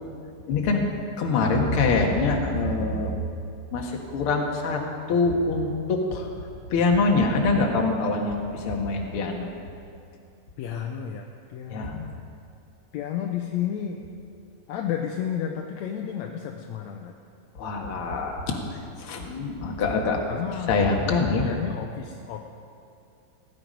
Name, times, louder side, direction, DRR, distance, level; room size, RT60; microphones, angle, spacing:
voice 1, 0.5-0.8 1.2-3.2 3.7-4.8 5.1-6.3 6.7-9.5 11.7-11.9 17.6-18.6 19.0-20.2 20.7-21.5, left 3 dB, 50° left, 1 dB, 1.9 m, -24 dB
voice 2, 10.6-12.2 12.9-14.1 14.7-17.1 20.3-22.4, left 9 dB, 75° left, 3 dB, 1.7 m, -32 dB
17.5 x 11.0 x 5.2 m, 2.5 s
omnidirectional pair, 3.8 m